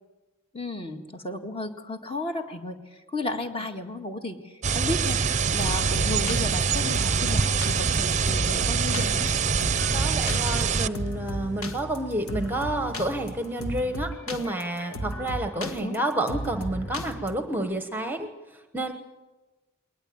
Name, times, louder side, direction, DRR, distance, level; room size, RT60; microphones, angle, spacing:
voice 1, 0.5-9.3 15.5-16.0, left 2 dB, 25° left, 5 dB, 1.9 m, -34 dB
sound 1, 4.6-10.9, right 5 dB, 35° right, 0.7 m, -24 dB
sound 2, 5.0-17.4, equal, 80° left, 1.7 m, -35 dB
voice 2, 9.9-18.9, right 1 dB, 10° right, 7 dB, 1.1 m, -30 dB
21.5 x 19.5 x 8.7 m, 1.2 s
head